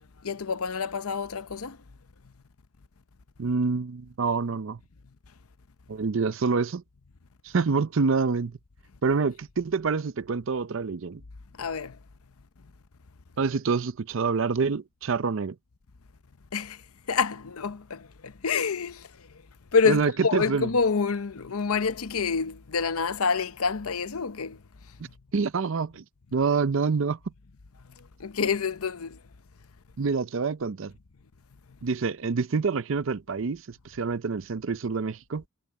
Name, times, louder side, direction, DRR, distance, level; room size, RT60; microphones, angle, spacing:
voice 1, 0.2-1.8 11.5-12.0 16.5-19.4 19.7-24.6 25.0-25.1 28.0-29.2, left 5 dB, 80° left, 0.8 m, -28 dB
voice 2, 3.4-4.8 5.9-6.8 7.4-8.6 9.0-11.2 13.4-15.6 19.9-20.7 25.3-26.0 26.3-27.2 30.0-30.9 31.8-35.4, right 4 dB, 60° right, 0.5 m, -26 dB
head